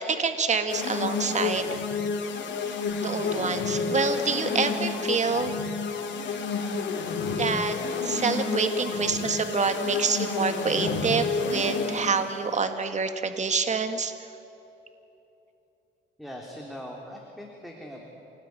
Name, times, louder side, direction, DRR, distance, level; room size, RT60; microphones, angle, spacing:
voice 1, 0.0-1.7 2.7-2.8 3.0-5.5 7.4-7.8 8.0-14.1, right 5 dB, 35° right, 7 dB, 2.0 m, -27 dB
sound 1, 0.7-12.2, left 4 dB, 65° left, 3.4 m, -30 dB
voice 2, 16.2-18.1, equal, ahead, -1 dB, 3.8 m, -41 dB
27.5 x 19.0 x 9.8 m, 2.9 s
cardioid pair, 90°, 20 cm